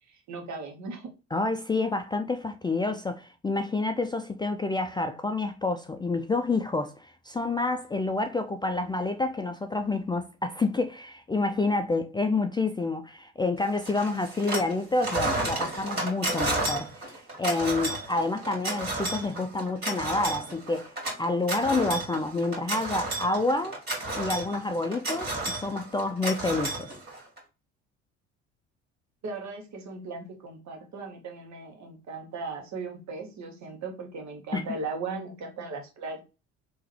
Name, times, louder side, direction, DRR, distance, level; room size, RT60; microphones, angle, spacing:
voice 1, 0.1-1.1 29.2-36.2, right 3 dB, 55° right, 1.4 m, -37 dB
voice 2, 1.3-20.9 21.2-23.8 24.1-26.9 34.5-34.6, left 3 dB, 15° left, 0.4 m, -28 dB
sound 1, 13.8-14.7 15.0-27.4, right 2 dB, 30° right, 2.4 m, -32 dB
3.6 x 3.0 x 3.2 m
hypercardioid pair, 70°, 34 cm